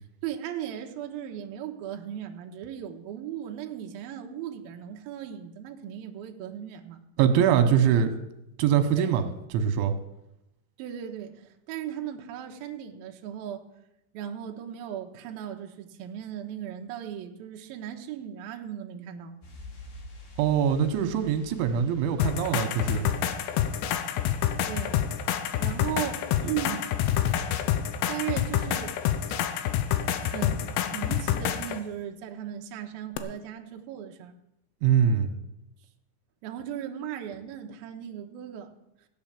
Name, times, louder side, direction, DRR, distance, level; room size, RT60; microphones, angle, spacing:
voice 1, 0.2-7.0 7.8-8.0 9.0-9.2 10.8-13.6 14.1-19.3 24.7-25.0 25.6-26.9 28.1-29.0 30.2-30.7 30.9-34.3 36.4-38.7, right 10 dB, 70° right, 3 dB, 2.5 m, -37 dB
voice 2, 7.2-8.1 8.6-9.2 9.5-9.9 20.4-23.1 34.8-35.3, right 8 dB, 85° right, 8 dB, 3.5 m, -23 dB
sound 1, 19.4-25.9 26.2-26.3, equal, 55° left, 4.3 m, -49 dB
sound 2, 22.2-31.8 33.2-33.3, left 10 dB, 75° left, 2.9 m, -27 dB
16.0 x 8.8 x 7.4 m, 0.87 s
omnidirectional pair, 5.3 m